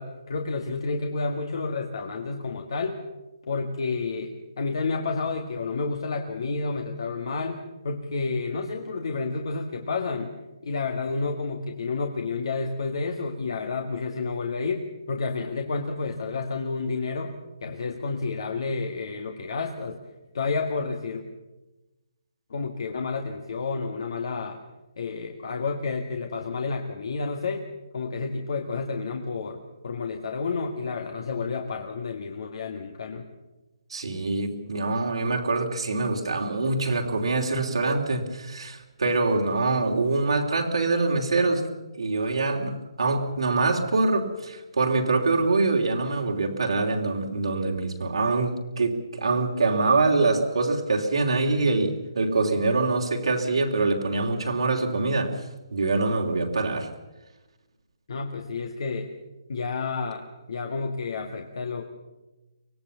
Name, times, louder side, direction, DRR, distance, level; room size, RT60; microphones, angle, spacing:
voice 1, 0.0-3.0 3.5-10.3 10.6-17.3 17.6-20.0 20.3-21.2 22.5-24.6 25.0-27.6 27.9-33.2 58.1-59.1 59.5-61.8, left 4 dB, 60° left, 4 dB, 1.8 m, -30 dB
voice 2, 33.9-41.6 42.0-55.4 55.7-56.9, right 3 dB, 80° right, 0 dB, 3.2 m, -24 dB
24.0 x 18.5 x 7.0 m, 1.1 s
hypercardioid pair, 160°, 3 cm